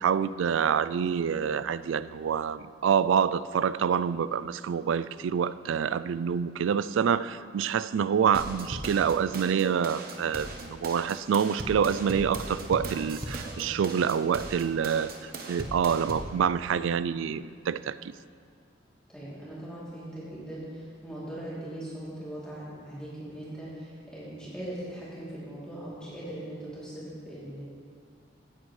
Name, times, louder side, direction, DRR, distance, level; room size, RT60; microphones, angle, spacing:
voice 1, 0.0-18.1, right 7 dB, 85° right, 16 dB, 0.3 m, -27 dB
sound 1, 8.3-16.3, right 2 dB, 50° right, 1.1 m, -38 dB
voice 2, 13.6-13.9 19.1-27.6, right 1 dB, 5° left, -10 dB, 2.9 m, -40 dB
17.0 x 9.5 x 3.2 m, 2.1 s
head